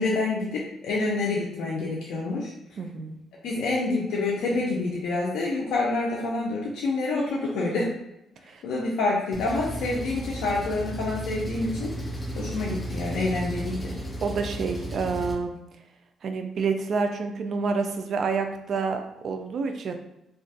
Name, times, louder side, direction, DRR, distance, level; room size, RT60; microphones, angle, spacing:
voice 1, 0.0-2.5 3.4-7.9 8.6-11.9 12.3-13.9, left 2 dB, 80° left, -5 dB, 0.4 m, -27 dB
voice 2, 2.8-3.2 8.5-8.6 14.2-15.6 16.2-19.9, right 4 dB, 60° right, 6 dB, 0.3 m, -28 dB
Engine, 9.3-15.3, right 1 dB, 15° left, 0.5 m, -34 dB
2.3 x 2.2 x 2.6 m, 0.86 s
cardioid pair, 90°, 0 cm